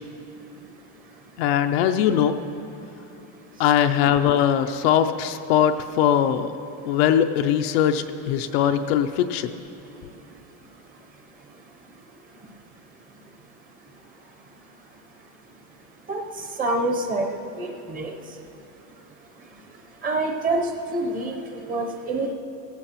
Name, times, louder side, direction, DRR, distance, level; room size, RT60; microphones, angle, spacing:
voice 1, 1.4-2.4 3.6-6.5 6.9-9.5, left 9 dB, 50° left, 8 dB, 0.5 m, -21 dB
voice 2, 16.6-18.1 20.0-22.3, right 2 dB, 20° right, 3 dB, 0.8 m, -26 dB
16.5 x 15.5 x 3.0 m, 2.9 s
supercardioid pair, 160°, 40 cm